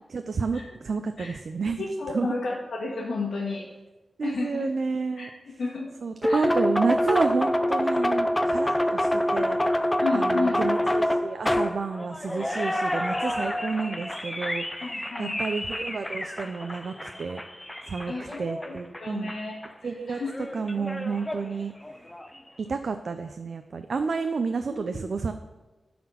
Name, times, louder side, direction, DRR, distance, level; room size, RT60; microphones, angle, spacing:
voice 1, 0.1-1.8 2.1-2.3 4.2-5.3 6.0-9.6 10.1-14.6 15.2-17.4 17.9-18.1 18.4-19.3 19.8-20.2 20.5-21.7 22.6-25.3, right 4 dB, 65° right, 7 dB, 0.4 m, -30 dB
voice 2, 1.8-3.7 4.2-4.7 5.1-5.3 5.6-5.9 6.2-6.5 10.0-10.6 14.8-15.4 18.0-20.3 24.7-25.0, left 3 dB, 85° left, -5 dB, 1.5 m, -32 dB
sound 1, 6.2-19.4 19.6-19.7 20.3-22.3, left 1 dB, 10° left, 0.5 m, -27 dB
11.5 x 4.3 x 5.6 m, 1.1 s
wide cardioid pair, 100°, 0 cm